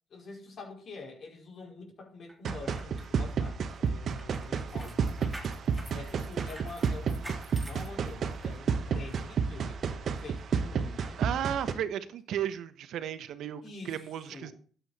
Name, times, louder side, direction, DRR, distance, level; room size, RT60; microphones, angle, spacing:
voice 1, 0.1-5.2 5.9-11.2 13.6-14.0 14.3-14.5, left 3 dB, 55° left, 5.3 m, -46 dB
sound 1, 2.3-8.6 9.0-9.2, right 1 dB, 10° right, 3.4 m, -49 dB
sound 2, 2.4-11.7, right 6 dB, 60° right, 1.4 m, -31 dB
voice 2, 11.2-14.5, right 10 dB, 80° right, 1.2 m, -34 dB
13.0 x 8.8 x 4.3 m
cardioid pair, 90°, 0 cm